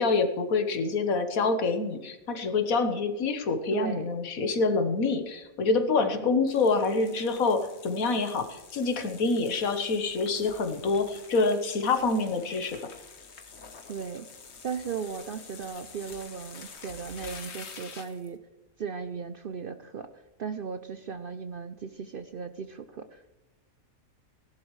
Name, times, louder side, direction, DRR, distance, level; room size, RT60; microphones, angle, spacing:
voice 1, 0.0-12.8, left 4 dB, 80° left, 7 dB, 1.6 m, -26 dB
voice 2, 3.7-4.1 6.0-6.3 13.9-14.3 14.6-18.4 18.8-23.3, right 6 dB, 55° right, 9 dB, 0.6 m, -37 dB
sound 1, 6.5-18.3, left 5 dB, 55° left, 1.4 m, -48 dB
17.0 x 11.5 x 3.2 m, 1.0 s
omnidirectional pair, 1.5 m